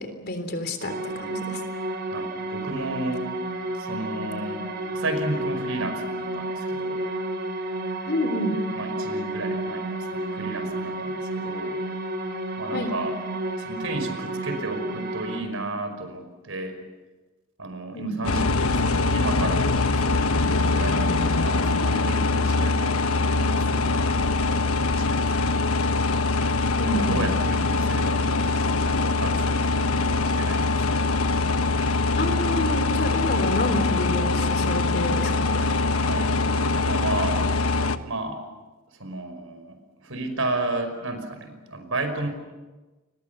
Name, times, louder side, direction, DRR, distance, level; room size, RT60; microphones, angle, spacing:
voice 1, 0.0-1.6 8.1-8.6 12.7-12.9 17.9-18.2 26.8-27.3 32.2-35.6, left 1 dB, 50° left, 7 dB, 3.6 m, -29 dB
sound 1, 0.8-15.4, right 1 dB, 50° right, 4.0 m, -31 dB
voice 2, 2.1-3.3 3.7-4.6 4.9-7.0 8.8-11.8 12.6-13.2 13.6-16.8 17.6-25.7 26.8-31.2 36.0-37.4 38.0-38.4 38.9-39.8 40.0-42.3, right 2 dB, 70° right, 7 dB, 5.3 m, -33 dB
sound 2, 18.2-38.0, left 3 dB, 85° left, 1.3 m, -23 dB
30.0 x 23.0 x 7.0 m, 1.2 s
head